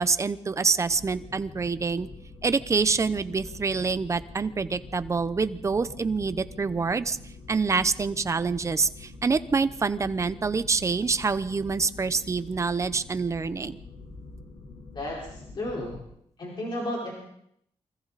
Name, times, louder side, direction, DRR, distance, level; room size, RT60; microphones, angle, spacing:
voice 1, 0.0-2.1 2.4-7.2 7.5-13.8, right 4 dB, 30° right, 13 dB, 0.8 m, -26 dB
sound 1, 0.9-16.0, left 2 dB, 60° left, 4.1 m, -45 dB
voice 2, 14.9-16.0 16.4-17.1, left 1 dB, 45° left, -3 dB, 4.6 m, -33 dB
29.0 x 24.5 x 4.2 m, 0.72 s
wide cardioid pair, 170°, 11 cm